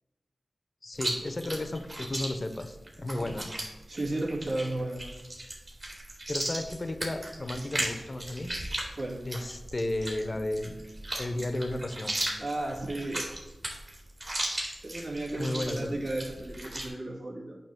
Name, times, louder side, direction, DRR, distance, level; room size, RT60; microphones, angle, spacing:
voice 1, 0.8-3.5 6.3-8.5 9.2-10.8 11.2-12.2 15.4-16.0, left 1 dB, 45° left, 8 dB, 0.7 m, -33 dB
Chewing mastication, 0.9-16.9, right 1 dB, 45° right, 2.4 m, -36 dB
voice 2, 3.9-5.1 9.0-9.2 12.4-13.3 14.8-17.6, right 2 dB, 70° right, -3 dB, 2.2 m, -34 dB
8.8 x 3.0 x 6.1 m, 1.1 s
cardioid pair, 45°, 0 cm